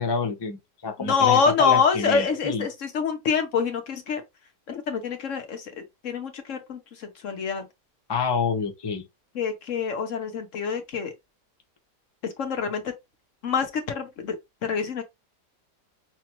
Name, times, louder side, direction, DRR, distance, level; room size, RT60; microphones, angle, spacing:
voice 1, 0.0-2.7 8.1-9.0, left 5 dB, 30° left, 0.5 m, -28 dB
voice 2, 1.0-4.2 4.7-7.7 9.3-11.1 12.2-12.9 13.4-14.4 14.6-15.0, left 6 dB, 55° left, 1.1 m, -26 dB
5.9 x 2.3 x 3.0 m
omnidirectional pair, 1.8 m